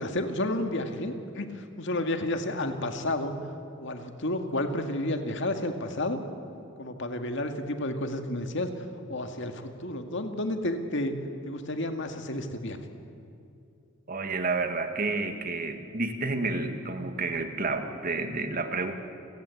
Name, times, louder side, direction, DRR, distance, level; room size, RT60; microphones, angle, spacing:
voice 1, 0.0-3.3 3.8-6.2 6.8-8.7 9.1-11.1 11.4-12.8, left 1 dB, 65° left, 6 dB, 2.0 m, -31 dB
voice 2, 14.1-18.9, right 3 dB, 45° right, 7 dB, 1.8 m, -30 dB
29.0 x 17.5 x 8.4 m, 2.5 s
head